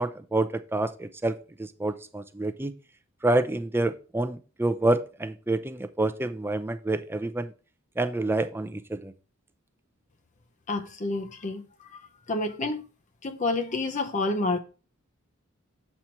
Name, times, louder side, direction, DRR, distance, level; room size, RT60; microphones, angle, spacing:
voice 1, 0.0-2.7 3.2-7.5 8.0-9.1, right 2 dB, 10° right, 0.4 m, -28 dB
voice 2, 10.7-12.0 12.3-12.8 13.2-14.6, left 2 dB, 35° left, 0.6 m, -29 dB
7.4 x 4.3 x 4.5 m
head